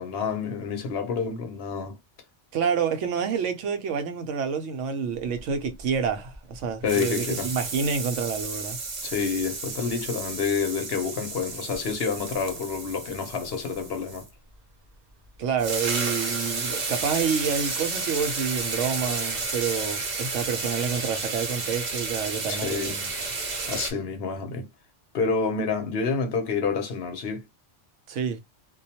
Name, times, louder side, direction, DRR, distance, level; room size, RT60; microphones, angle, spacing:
voice 1, 0.0-2.0 6.8-7.5 9.0-14.3 22.5-22.9 23.7-24.7 25.1-27.4, left 5 dB, 60° left, 0.8 m, -28 dB
voice 2, 2.5-8.8 15.4-23.3 28.1-28.4, right 6 dB, 85° right, 0.9 m, -28 dB
sound 1, 5.3-6.6 6.9-14.3 15.3-15.4 15.6-23.9, right 3 dB, 45° right, 0.6 m, -32 dB
2.3 x 2.2 x 2.7 m
omnidirectional pair, 1.2 m